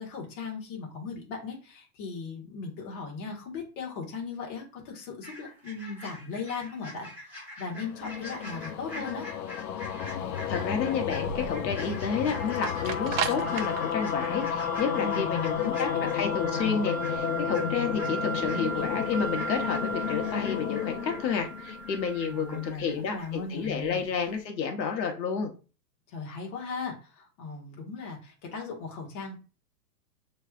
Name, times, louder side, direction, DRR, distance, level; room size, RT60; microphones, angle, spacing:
voice 1, 0.0-9.3 15.0-16.1 18.0-18.9 22.3-24.0 26.1-29.4, left 4 dB, 30° left, -1 dB, 1.5 m, -38 dB
sound 1, 5.2-23.3 23.6-23.7, left 1 dB, 5° right, 2.7 m, -45 dB
sound 2, 7.7-22.2, left 8 dB, 60° left, 0.6 m, -32 dB
sound 3, 10.2-24.3, right 6 dB, 55° right, 0.6 m, -38 dB
voice 2, 10.5-15.9 16.1-25.5, left 6 dB, 85° left, 4 dB, 1.1 m, -30 dB
6.6 x 3.2 x 2.4 m, 0.34 s
hypercardioid pair, 155°, 50 cm